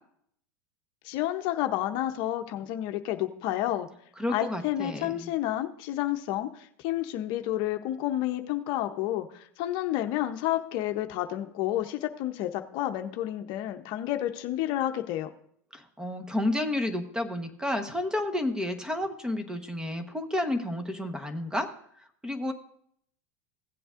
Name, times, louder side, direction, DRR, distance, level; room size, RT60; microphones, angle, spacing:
voice 1, 1.0-3.9 4.3-15.3, left 13 dB, 55° left, 7 dB, 0.7 m, -30 dB
voice 2, 4.2-5.3 15.7-21.7 22.2-22.5, left 1 dB, 5° right, 8 dB, 1.1 m, -31 dB
16.0 x 7.8 x 2.5 m, 0.67 s
hypercardioid pair, 105°, 9 cm